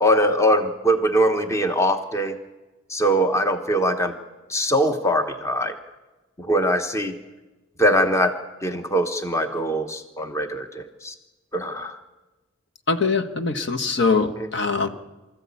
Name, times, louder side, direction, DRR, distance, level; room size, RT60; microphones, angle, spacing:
voice 1, 0.0-2.4 2.9-4.1 4.5-5.7 6.4-7.1 7.8-8.3 8.6-11.1 11.5-12.0, equal, 15° left, 7 dB, 1.1 m, -22 dB
voice 2, 12.9-14.9, left 4 dB, 60° left, 5 dB, 1.3 m, -22 dB
24.5 x 14.0 x 8.5 m, 1.1 s
head